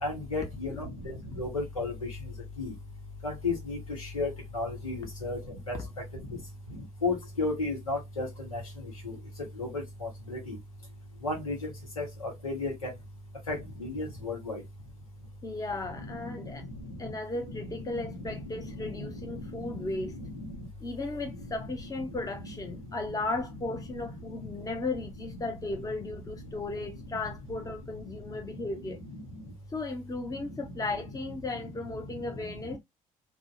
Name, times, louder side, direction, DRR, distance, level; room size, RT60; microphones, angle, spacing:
voice 1, 0.0-0.7 1.4-1.9 2.6-2.7 3.4-3.8 4.1-4.3 4.5-5.0 5.2-5.4 5.7-5.8 7.0-8.3 9.6-9.7 10.3-10.4 11.2-11.5 12.0-12.1 12.4-12.7 13.5-13.6 13.8-14.6, left 3 dB, 85° left, 0.8 m, -31 dB
voice 2, 15.4-16.6 17.0-20.1 20.8-29.0 29.7-32.8, left 2 dB, 20° left, 0.7 m, -36 dB
2.6 x 2.1 x 2.3 m
figure-of-eight pair, 50°, 17 cm